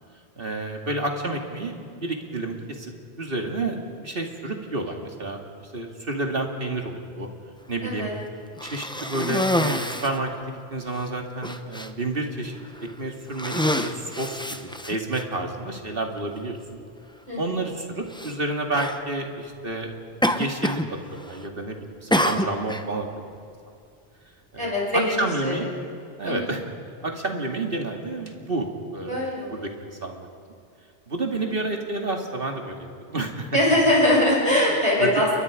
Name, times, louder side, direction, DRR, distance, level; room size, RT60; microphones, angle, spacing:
voice 1, 0.4-2.9 3.2-7.3 7.7-8.1 8.6-12.5 13.0-16.6 17.4-19.9 20.3-23.1 24.5-25.7 26.2-26.6 27.0-30.3 31.1-33.5 35.0-35.1, right 2 dB, 50° right, 2 dB, 2.5 m, -30 dB
voice 2, 7.8-8.1 17.3-17.5 24.6-25.6 26.2-26.5 29.1-29.7 31.4-31.6 33.5-35.4, left 1 dB, 25° right, -4 dB, 6.8 m, -22 dB
Cough, 8.6-10.2 10.9-11.0 11.4-11.9 12.6-12.9 13.3-15.2 16.2-16.3 18.1-18.3 18.7-19.0 20.2-20.9 21.2-21.6 22.1-22.9, left 1 dB, 5° left, 0.8 m, -26 dB
29.5 x 22.5 x 5.0 m, 2.5 s
omnidirectional pair, 1.2 m